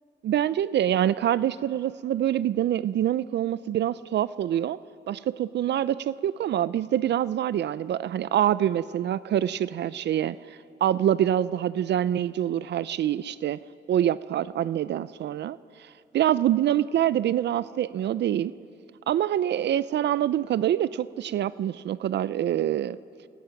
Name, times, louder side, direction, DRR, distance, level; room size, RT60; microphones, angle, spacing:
voice 1, 0.2-4.8 5.1-13.6 13.9-18.5 19.1-23.0, right 11 dB, 60° right, 17 dB, 0.5 m, -25 dB
28.5 x 21.5 x 5.9 m, 2.4 s
cardioid pair, 90°, 20 cm